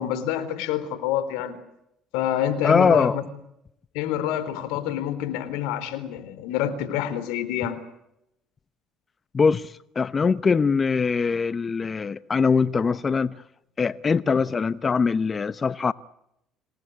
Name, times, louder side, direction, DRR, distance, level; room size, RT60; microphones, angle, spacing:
voice 1, 0.0-1.6 2.1-3.2 3.9-7.8, left 10 dB, 80° left, 4.0 m, -27 dB
voice 2, 2.6-3.2 9.3-13.4 13.8-15.9, left 5 dB, 35° left, 0.9 m, -22 dB
26.5 x 19.0 x 9.6 m
supercardioid pair, 75°, 0 cm